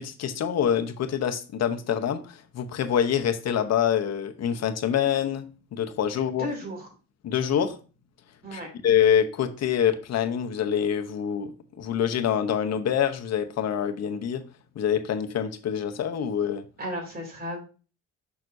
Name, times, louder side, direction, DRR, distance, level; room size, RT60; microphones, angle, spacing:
voice 1, 0.0-6.5 7.2-7.8 8.5-14.4 14.8-16.6, left 9 dB, 60° left, 0.8 m, -26 dB
voice 2, 6.4-6.9 8.4-8.7 16.8-17.6, equal, 30° right, 2.7 m, -34 dB
6.1 x 5.8 x 2.6 m
cardioid pair, 90°, 30 cm